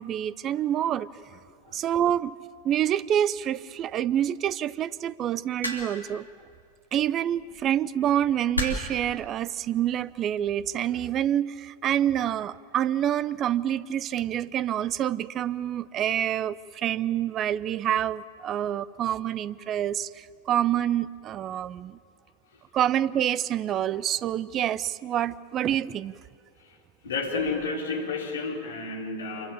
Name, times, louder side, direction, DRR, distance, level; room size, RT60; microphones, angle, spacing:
voice 1, 0.0-1.4 1.7-2.4 2.6-6.3 6.9-22.0 22.7-26.1, right 10 dB, 30° right, 20 dB, 0.6 m, -27 dB
sound 1, 5.6-6.1 7.4-7.6 8.5-9.0 10.0-10.3, left 1 dB, 85° left, 2.9 m, -31 dB
voice 2, 27.0-29.5, left 4 dB, 65° left, 1 dB, 4.0 m, -31 dB
26.5 x 23.5 x 8.8 m, 2.2 s
figure-of-eight pair, 90°, 0 cm